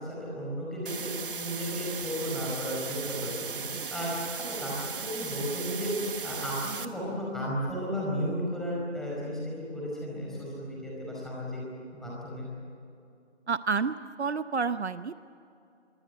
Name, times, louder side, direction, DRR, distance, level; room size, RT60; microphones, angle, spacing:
voice 1, 0.0-3.6 3.9-4.1 4.4-11.6 11.9-12.5, equal, ahead, -5 dB, 4.9 m, -34 dB
sound 1, 0.9-6.9, right 5 dB, 50° right, 1.5 m, -37 dB
voice 2, 13.5-15.2, right 5 dB, 65° right, 13 dB, 0.9 m, -30 dB
26.0 x 24.0 x 8.0 m, 2.6 s
figure-of-eight pair, 160°, 35 cm